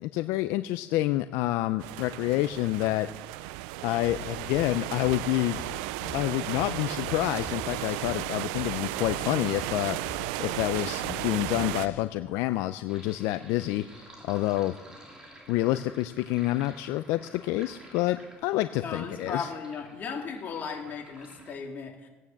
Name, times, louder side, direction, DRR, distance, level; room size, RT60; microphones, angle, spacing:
voice 1, 0.0-3.1 3.8-5.6 6.1-14.8 15.5-19.5, left 16 dB, 75° left, 11 dB, 0.5 m, -28 dB
sound 1, 1.8-11.9, right 17 dB, 90° right, 0.4 m, -34 dB
sound 2, 4.0-12.0, left 5 dB, 60° left, 2.4 m, -43 dB
Sink (filling or washing), 12.9-21.5, right 1 dB, 15° right, 3.1 m, -51 dB
voice 2, 18.8-22.1, left 5 dB, 40° left, 1 dB, 3.0 m, -36 dB
18.0 x 9.3 x 7.3 m, 1.2 s
cardioid pair, 110°, 5 cm